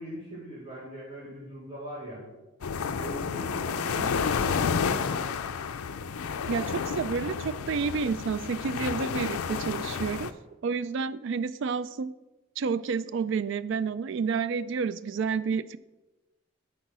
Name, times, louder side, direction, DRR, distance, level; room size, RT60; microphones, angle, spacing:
voice 1, 0.0-2.3 3.0-5.4, right 1 dB, 20° right, -12 dB, 3.1 m, -41 dB
sound 1, 2.6-10.3, left 6 dB, 90° left, 0.5 m, -30 dB
voice 2, 6.5-10.3 10.6-12.1 12.6-15.8, right 5 dB, 55° right, 16 dB, 0.3 m, -30 dB
8.7 x 4.6 x 6.1 m, 1.1 s
head